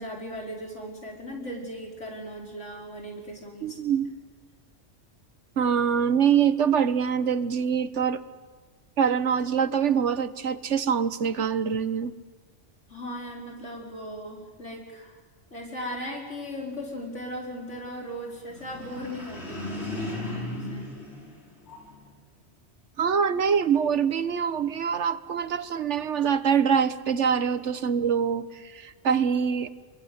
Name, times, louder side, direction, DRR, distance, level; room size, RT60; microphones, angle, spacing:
voice 1, 0.0-3.8 12.9-15.2 15.5-20.9, equal, 80° left, -1 dB, 5.5 m, -38 dB
voice 2, 3.6-4.1 5.6-8.2 9.0-12.1 23.0-29.7, right 7 dB, 80° right, 13 dB, 1.4 m, -24 dB
sound 1, 18.5-22.1, left 1 dB, 60° left, 4.9 m, -36 dB
30.0 x 22.5 x 8.1 m, 1.4 s
omnidirectional pair, 1.2 m